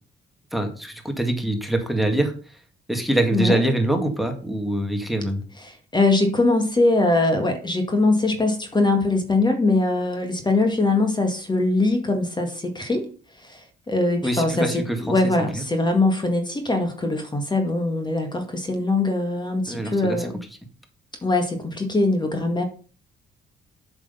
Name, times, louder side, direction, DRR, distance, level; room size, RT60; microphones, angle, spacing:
voice 1, 0.5-2.3 2.9-5.4 14.2-15.0 15.5-15.6 19.7-20.3, right 1 dB, ahead, 5 dB, 2.0 m, -24 dB
voice 2, 5.6-13.1 13.4-20.4 21.2-22.6, left 2 dB, 20° left, 5 dB, 1.9 m, -22 dB
7.5 x 6.3 x 5.5 m, 0.38 s
cardioid pair, 90°, 20 cm